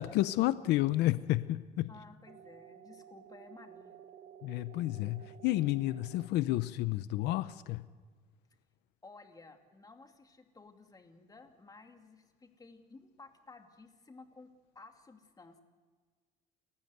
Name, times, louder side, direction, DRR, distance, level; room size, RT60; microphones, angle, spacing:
voice 1, 0.0-1.9 4.4-7.9, left 16 dB, 90° left, 14 dB, 0.7 m, -31 dB
voice 2, 1.9-4.0 9.0-14.5 14.7-15.6, left 3 dB, 20° left, 4 dB, 2.6 m, -55 dB
sound 1, 2.3-6.3, right 9 dB, 50° right, 1.1 m, -54 dB
29.0 x 15.0 x 8.0 m, 1.5 s
cardioid pair, 110°, 17 cm